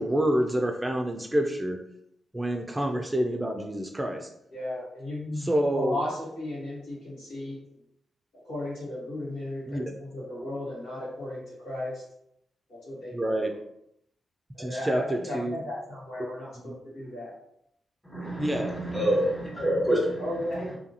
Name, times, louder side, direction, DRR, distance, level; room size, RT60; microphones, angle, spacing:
voice 1, 0.0-1.8 2.3-4.3 5.5-6.0 9.7-9.8 13.1-13.5 14.6-15.5 18.4-18.7, right 1 dB, 20° right, 3 dB, 0.4 m, -27 dB
voice 2, 4.5-7.6 8.4-12.0 12.7-13.6 14.5-17.4 20.2-20.8, left 1 dB, 90° left, -8 dB, 1.5 m, -35 dB
voice 3, 18.0-20.2, equal, 5° left, -3 dB, 1.3 m, -27 dB
2.7 x 2.4 x 2.7 m, 0.75 s
supercardioid pair, 45°, 0 cm